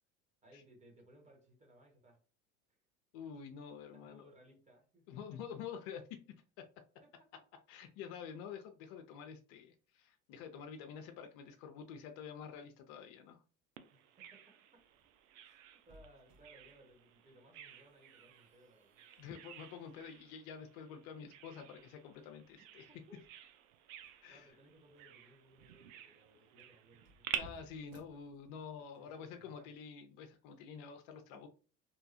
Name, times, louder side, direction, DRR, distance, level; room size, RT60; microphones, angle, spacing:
voice 1, 0.4-2.2 2.7-2.8 3.9-5.4 7.0-7.3 13.9-14.8 15.4-19.0 22.6-23.2 24.0-27.3 29.0-29.7 31.3-31.4, right 1 dB, 15° right, 0 dB, 1.2 m, -63 dB
voice 2, 3.1-4.3 5.1-6.2 6.6-6.7 7.7-13.4 19.2-22.9 24.2-24.5 27.3-31.5, left 7 dB, 60° left, 6 dB, 0.5 m, -48 dB
Bird vocalization bird call bird song, 13.8-27.4, right 10 dB, 70° right, 0.5 m, -50 dB
sound 1, 14.7-28.9, equal, 40° right, 1.0 m, -65 dB
2.7 x 2.3 x 2.6 m, 0.38 s
hypercardioid pair, 70°, 42 cm